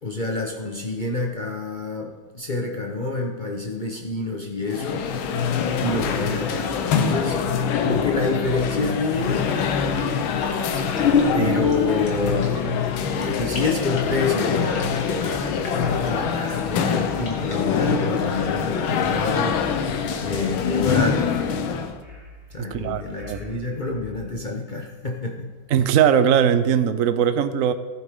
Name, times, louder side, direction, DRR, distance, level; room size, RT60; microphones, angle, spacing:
voice 1, 0.0-5.0 5.8-7.4 7.8-9.5 11.3-12.6 13.2-19.6 20.2-21.3 22.5-25.5, left 3 dB, 40° left, 1 dB, 0.6 m, -28 dB
sound 1, 4.6-22.0, left 6 dB, 90° left, 1.7 m, -24 dB
sound 2, 9.5-20.5, left 2 dB, 60° left, 2.5 m, -42 dB
sound 3, 11.4-24.3, left 1 dB, 25° right, 2.9 m, -43 dB
voice 2, 22.6-23.4 25.7-27.7, right 8 dB, 75° right, 11 dB, 0.7 m, -20 dB
16.0 x 9.1 x 3.7 m, 1.3 s
omnidirectional pair, 2.1 m